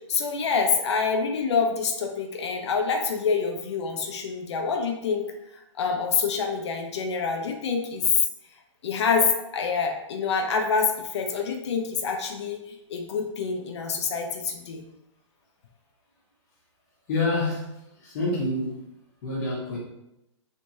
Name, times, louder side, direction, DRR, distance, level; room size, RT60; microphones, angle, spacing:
voice 1, 0.1-5.3 5.8-8.1 8.8-14.8, left 5 dB, 60° left, 3 dB, 0.6 m, -26 dB
voice 2, 17.1-17.7 18.0-18.8 19.2-19.8, left 2 dB, 35° left, -4 dB, 1.0 m, -27 dB
3.3 x 3.0 x 2.8 m, 0.88 s
hypercardioid pair, 160°, 16 cm